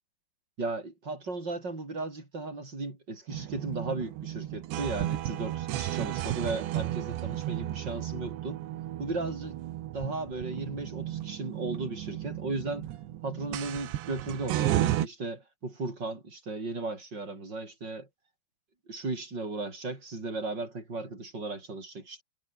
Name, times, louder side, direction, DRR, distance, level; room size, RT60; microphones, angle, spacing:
voice 1, 0.6-8.6 9.0-9.6 9.9-12.9 13.2-18.1 18.9-22.2, right 3 dB, 25° right, 7.0 m, -36 dB
sound 1, 3.3-15.1, right 13 dB, 80° right, 3.7 m, -33 dB
omnidirectional pair, 5.1 m